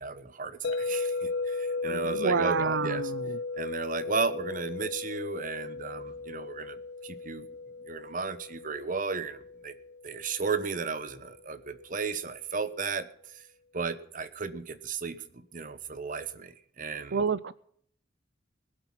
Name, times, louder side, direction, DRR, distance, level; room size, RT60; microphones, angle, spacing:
voice 1, 0.0-3.1 3.6-7.5 7.8-9.7 10.0-13.5 13.7-17.2, right 4 dB, 45° right, 12 dB, 1.1 m, -34 dB
sound 1, 0.6-10.7, left 3 dB, 60° left, 0.6 m, -36 dB
voice 2, 1.9-3.4 17.1-17.5, right 5 dB, 65° right, 16 dB, 0.5 m, -29 dB
21.0 x 8.1 x 5.7 m, 0.63 s
head